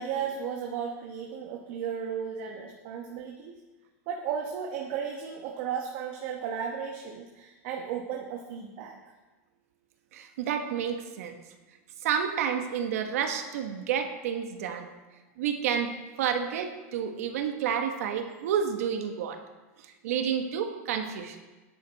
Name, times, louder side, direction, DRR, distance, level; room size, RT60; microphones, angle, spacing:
voice 1, 0.0-3.6 4.1-9.0, right 7 dB, 45° right, 1 dB, 1.1 m, -34 dB
voice 2, 10.1-11.4 12.0-14.9 15.4-15.9 16.2-19.4 19.8-21.4, right 8 dB, 70° right, 6 dB, 1.3 m, -30 dB
12.5 x 10.5 x 4.1 m, 1.2 s
supercardioid pair, 165°, 8 cm